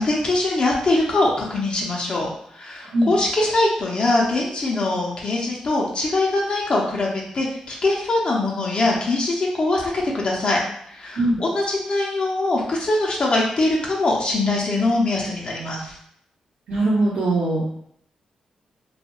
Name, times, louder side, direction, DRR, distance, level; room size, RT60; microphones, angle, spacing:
voice 1, 0.0-10.6 10.9-15.9, left 2 dB, 50° left, -2 dB, 0.6 m, -22 dB
voice 2, 16.7-17.6, right 2 dB, 75° right, -9 dB, 0.8 m, -20 dB
2.3 x 2.2 x 2.9 m, 0.69 s
cardioid pair, 60°, 2 cm